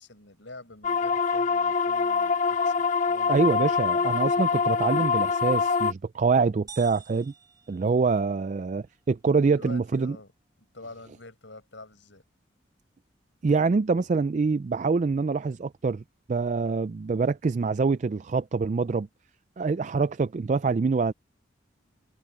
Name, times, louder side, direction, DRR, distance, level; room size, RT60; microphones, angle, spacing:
voice 1, 0.0-3.3 9.3-10.3 10.7-12.2, left 2 dB, 70° left, 5.9 m, -47 dB
sound 1, 0.8-5.9, left 5 dB, 40° left, 0.7 m, -24 dB
voice 2, 3.3-7.3 7.7-10.2 13.4-16.0 16.3-19.1 19.6-21.1, right 4 dB, 40° right, 0.3 m, -25 dB
sound 2, 6.7-8.6, right 6 dB, 20° right, 2.9 m, -49 dB
open air
head